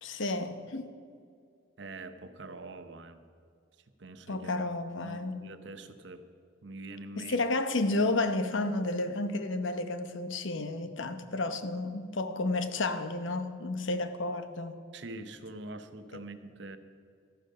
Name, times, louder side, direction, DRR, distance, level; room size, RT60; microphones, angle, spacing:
voice 1, 0.0-0.9 4.3-5.4 7.2-14.8 16.1-16.2, left 2 dB, 75° left, 10 dB, 0.9 m, -31 dB
voice 2, 1.8-3.2 4.0-4.5 5.0-6.2 6.6-7.4 14.9-16.8, right 2 dB, 65° right, 10 dB, 0.8 m, -44 dB
13.5 x 12.0 x 5.3 m, 2.3 s
head